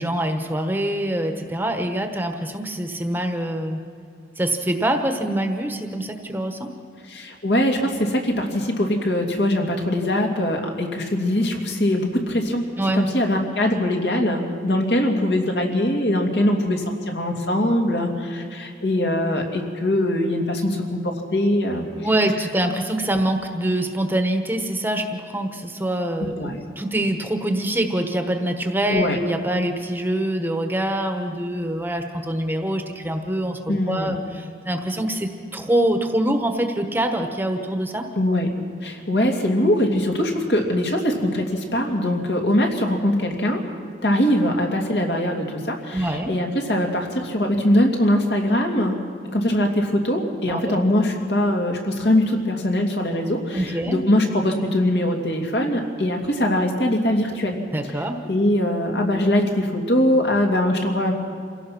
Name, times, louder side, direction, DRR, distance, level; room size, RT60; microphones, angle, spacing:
voice 1, 0.0-3.8 4.4-6.7 12.8-13.0 22.0-38.1 45.9-46.3 50.5-50.8 53.5-54.0 57.7-58.2, right 1 dB, 10° right, 5 dB, 1.2 m, -24 dB
voice 2, 7.1-12.6 13.0-21.9 26.2-26.6 28.9-29.2 33.7-34.2 38.2-38.5 38.8-43.6 44.0-49.0 49.3-57.6 58.2-61.1, left 1 dB, 65° left, 1 dB, 2.7 m, -22 dB
27.5 x 17.0 x 6.0 m, 2.3 s
head